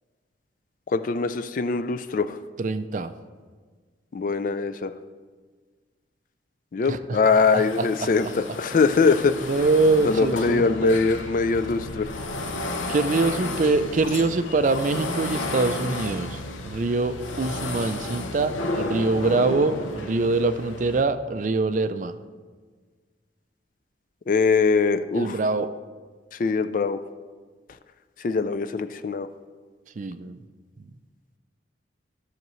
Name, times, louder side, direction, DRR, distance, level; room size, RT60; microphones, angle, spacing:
voice 1, 0.9-2.4 4.1-4.9 6.7-9.5 10.0-12.2 24.3-25.4 26.3-27.0 28.2-29.3, left 4 dB, 45° left, 11 dB, 0.3 m, -22 dB
voice 2, 2.6-3.1 6.9-7.2 7.5-8.1 9.0-9.1 9.5-11.0 12.9-22.2 25.1-25.7 30.0-30.4 30.8-30.9, right 3 dB, 40° right, 11 dB, 0.4 m, -24 dB
sound 1, 7.2-21.0, left 2 dB, 85° left, 0.7 m, -33 dB
13.5 x 6.6 x 3.1 m, 1.5 s
head